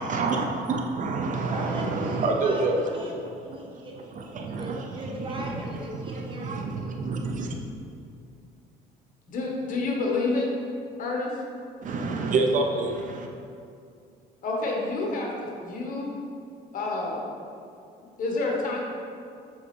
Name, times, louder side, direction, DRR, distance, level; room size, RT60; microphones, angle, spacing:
voice 1, 0.0-2.8 4.1-7.6 11.8-13.3, right 3 dB, 50° right, 2 dB, 0.6 m, -28 dB
voice 2, 1.5-3.1 3.4-6.7, right 1 dB, 30° right, -2 dB, 1.2 m, -38 dB
voice 3, 9.3-10.5 11.0-11.3 14.4-16.1 16.7-17.3 18.2-18.8, left 3 dB, 50° left, -2 dB, 1.3 m, -28 dB
7.6 x 4.1 x 3.3 m, 2.5 s
cardioid pair, 110°, 17 cm